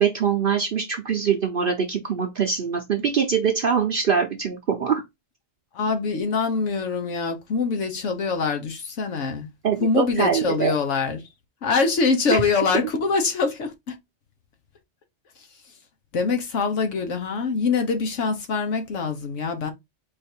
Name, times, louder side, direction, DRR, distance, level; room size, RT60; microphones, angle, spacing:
voice 1, 0.0-5.0 9.6-10.7 12.3-12.4, right 6 dB, 55° right, 0.8 m, -23 dB
voice 2, 5.7-9.5 9.8-11.2 11.6-14.0 16.1-19.7, left 4 dB, 85° left, 1.3 m, -24 dB
4.5 x 2.6 x 4.4 m
omnidirectional pair, 1.2 m